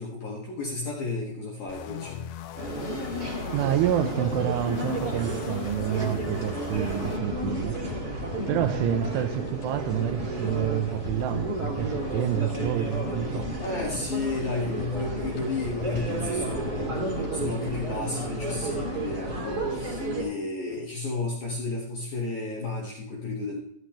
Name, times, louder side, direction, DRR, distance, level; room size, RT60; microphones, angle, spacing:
voice 1, 0.0-2.3 12.1-12.2 13.6-17.0 17.3-23.6, left 3 dB, 60° left, 2.1 m, -33 dB
sound 1, 1.7-7.2, left 11 dB, 90° left, 2.4 m, -40 dB
sound 2, 2.6-20.2, right 1 dB, 30° right, 1.8 m, -32 dB
voice 2, 3.5-7.8 8.5-13.5, right 12 dB, 85° right, 3.0 m, -28 dB
sound 3, 6.7-19.0 19.2-19.3 19.5-19.6, left 2 dB, 40° left, 3.3 m, -40 dB
12.5 x 12.5 x 3.2 m
omnidirectional pair, 5.8 m